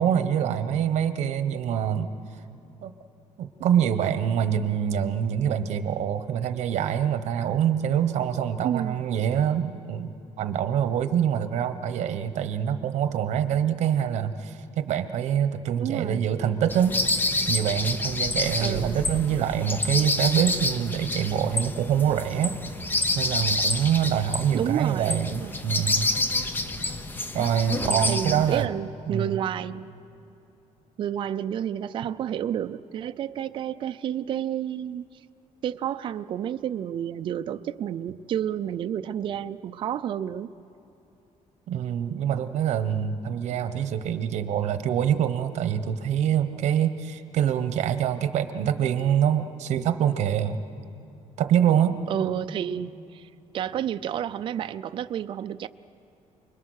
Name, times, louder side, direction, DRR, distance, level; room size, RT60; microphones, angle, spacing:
voice 1, 0.0-2.1 2.8-2.9 3.4-17.0 17.5-22.6 22.9-26.1 27.3-28.7 29.1-29.4 41.7-50.6 51.4-52.0, right 9 dB, 60° right, 10 dB, 1.1 m, -25 dB
voice 2, 8.6-9.0 15.8-16.2 18.6-19.0 24.5-25.6 27.8-29.9 31.0-35.0 35.6-40.5 52.1-53.3 53.5-55.7, right 10 dB, 40° right, 10 dB, 0.5 m, -30 dB
sound 1, 16.7-28.6, left 2 dB, 15° left, 0.9 m, -28 dB
29.0 x 21.5 x 6.5 m, 2.8 s
cardioid pair, 180°, 13 cm